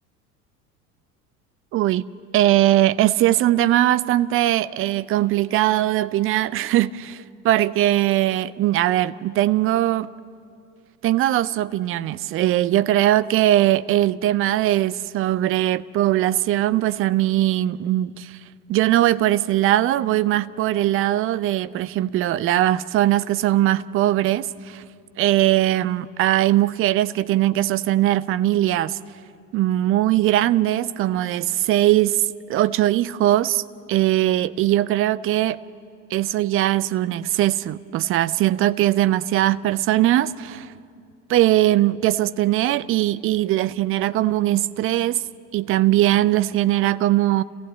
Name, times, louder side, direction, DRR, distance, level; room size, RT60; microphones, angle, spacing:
voice 1, 1.7-2.1 2.3-10.1 11.0-18.4 18.7-24.8 25.2-29.0 29.5-33.6 33.9-35.6 36.1-40.7 41.3-45.2 45.5-47.4, right 14 dB, 30° right, 0.6 m, -20 dB
29.5 x 15.0 x 8.2 m
figure-of-eight pair, 70°, 47 cm